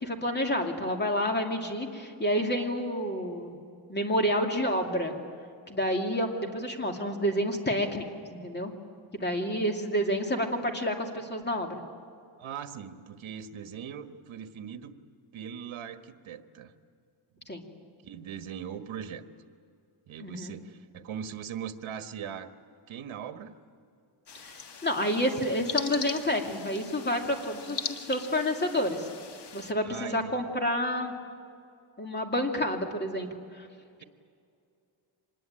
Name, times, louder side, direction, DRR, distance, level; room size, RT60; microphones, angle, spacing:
voice 1, 0.0-3.6 3.9-5.2 5.7-8.0 8.3-8.7 9.1-11.8 17.5-17.6 20.2-20.5 24.4-24.5 24.8-29.1 29.5-31.1 32.0-33.3 33.5-33.7, equal, 20° left, 3 dB, 2.6 m, -29 dB
voice 2, 12.4-14.9 15.3-16.7 17.3-17.5 18.0-19.2 20.1-22.5 22.9-23.5 29.8-30.3, right 8 dB, 70° right, 8 dB, 1.5 m, -40 dB
sound 1, 24.3-29.7, left 6 dB, 55° left, 1.7 m, -40 dB
25.0 x 20.5 x 9.0 m, 2.3 s
wide cardioid pair, 135°, 48 cm